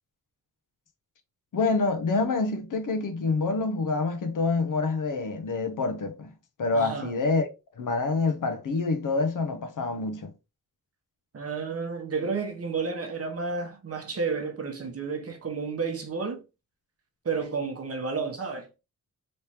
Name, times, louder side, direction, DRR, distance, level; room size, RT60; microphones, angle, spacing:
voice 1, 1.5-6.3 6.6-7.5 7.8-10.3, left 3 dB, 65° left, 0.7 m, -27 dB
voice 2, 6.7-7.1 11.3-16.4 17.2-18.7, right 4 dB, 45° right, 0.9 m, -31 dB
3.4 x 3.1 x 2.8 m
wide cardioid pair, 145°, 35 cm